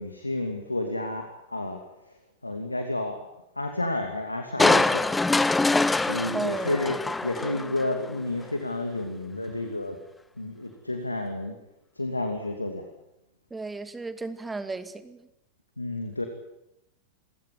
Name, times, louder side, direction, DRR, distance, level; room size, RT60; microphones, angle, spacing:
voice 1, 0.0-1.8 2.4-3.3 3.6-5.2 6.0-7.0 7.2-10.0 10.4-11.6 12.0-12.8 15.8-16.2, left 2 dB, 85° left, 5 dB, 2.6 m, -30 dB
Crushing, 4.6-8.0 8.4-8.5, left 3 dB, 10° left, 0.9 m, -24 dB
voice 2, 6.3-6.8 13.5-15.3, right 3 dB, 10° right, 12 dB, 2.1 m, -34 dB
27.5 x 16.0 x 9.6 m, 0.85 s
figure-of-eight pair, 90°, 0 cm